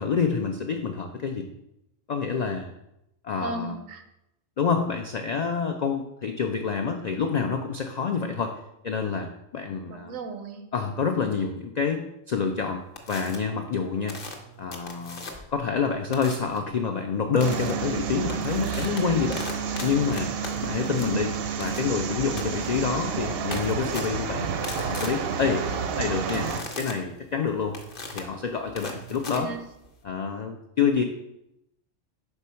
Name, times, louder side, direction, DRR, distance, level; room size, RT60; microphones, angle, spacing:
voice 1, 0.0-1.5 2.1-2.7 3.2-3.8 4.6-8.5 8.8-10.2 10.7-12.8 13.1-14.2 14.6-19.5 19.8-20.3 20.6-24.5 24.8-25.6 25.9-26.5 26.8-27.8 28.1-29.5 30.0-31.0, left 5 dB, 80° left, 5 dB, 0.3 m, -27 dB
voice 2, 3.4-4.0 9.8-10.6 20.9-21.3 29.3-29.6, right 3 dB, 90° right, 7 dB, 1.1 m, -35 dB
sound 1, 13.0-13.4 14.1-15.6 16.1-16.6 17.4-17.7 18.1-30.0, left 2 dB, 50° left, 1.0 m, -40 dB
sound 2, 17.4-26.6, right 6 dB, 60° right, 0.7 m, -30 dB
4.5 x 4.2 x 5.6 m, 0.85 s
omnidirectional pair, 1.3 m